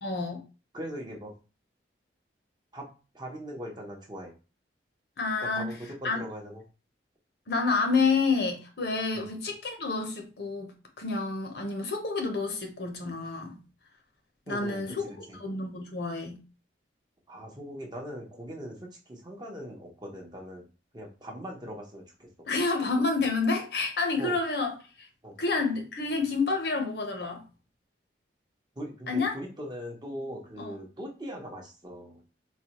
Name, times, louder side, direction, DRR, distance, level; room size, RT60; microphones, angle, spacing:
voice 1, 0.0-0.4 5.2-5.7 6.0-6.2 7.5-13.6 14.5-15.1 15.4-16.4 22.5-24.7 25.4-27.4 29.1-29.4 30.6-30.7, left 4 dB, 60° left, 0.7 m, -29 dB
voice 2, 0.7-1.3 2.7-2.8 3.1-4.3 5.5-6.6 9.1-9.2 14.5-15.4 17.3-20.7 20.9-22.3 24.2-24.3 25.2-25.4 28.8-32.2, equal, 25° right, 0.8 m, -40 dB
3.9 x 2.2 x 2.9 m
head